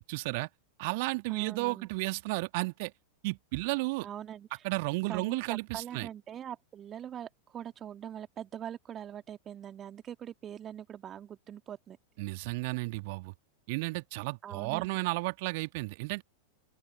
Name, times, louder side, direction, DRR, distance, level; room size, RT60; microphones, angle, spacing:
voice 1, 0.1-0.5 0.8-2.9 3.2-4.1 4.6-6.1 12.2-13.3 13.7-16.2, right 26 dB, 50° right, 2.0 m, -33 dB
voice 2, 1.3-1.9 4.0-4.6 5.1-12.0 14.4-15.0, right 9 dB, 25° right, 1.9 m, -43 dB
open air
figure-of-eight pair, 90°, 0 cm